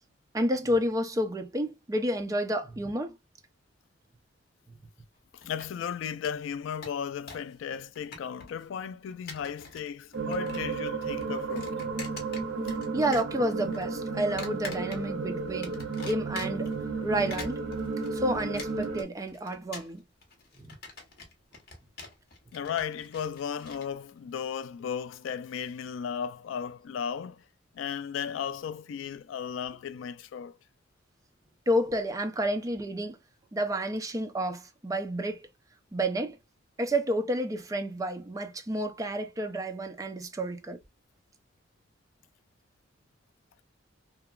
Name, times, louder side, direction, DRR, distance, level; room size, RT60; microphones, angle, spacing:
voice 1, 0.3-3.2 12.9-15.8 16.0-16.7 17.0-17.6 18.1-20.0 20.6-20.8 31.7-33.2 33.5-35.4 35.9-36.4 36.8-40.8, right 1 dB, 20° right, 0.4 m, -30 dB
voice 2, 5.3-11.9 22.5-27.4 27.7-30.6, left 7 dB, 90° left, 0.3 m, -35 dB
sound 1, 5.4-5.9 6.2-6.3 6.6-7.5 7.8-8.6 9.1-9.9 10.1-10.8 11.0-12.9 13.1-13.8 14.4-15.2 15.6-16.7 17.1-23.8, left 4 dB, 55° left, 0.9 m, -44 dB
sound 2, 10.1-19.0, right 4 dB, 85° right, 0.6 m, -33 dB
2.8 x 2.2 x 2.3 m
head